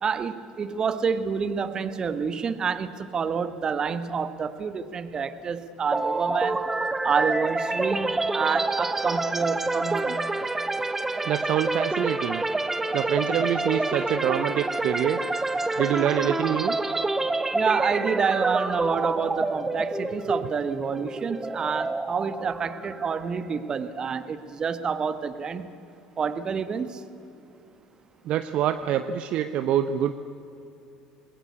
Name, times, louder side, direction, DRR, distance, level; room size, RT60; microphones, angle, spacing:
voice 1, 0.0-6.6 7.0-10.2 17.5-25.7 26.2-27.0, right 6 dB, 35° right, 12 dB, 1.5 m, -28 dB
sound 1, 5.9-23.7, right 2 dB, 15° right, 1.4 m, -28 dB
voice 2, 11.2-12.4 12.9-15.2 15.8-16.8 28.2-30.1, right 10 dB, 50° right, 10 dB, 0.9 m, -25 dB
27.5 x 20.5 x 8.4 m, 2.8 s
figure-of-eight pair, 65°, 2 cm